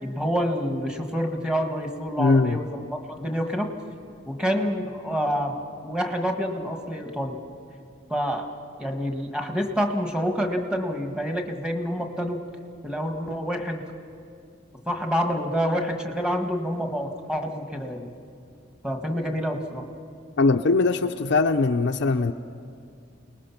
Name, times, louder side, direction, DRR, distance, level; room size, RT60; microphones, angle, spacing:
voice 1, 0.0-3.7 4.3-5.6 5.8-7.4 8.1-8.5 8.8-12.4 12.8-13.8 14.9-18.1 18.8-19.8, equal, 5° right, 3 dB, 1.6 m, -27 dB
voice 2, 2.2-2.6 20.4-22.3, left 3 dB, 65° left, 3 dB, 0.6 m, -21 dB
29.0 x 19.5 x 5.9 m, 2.4 s
head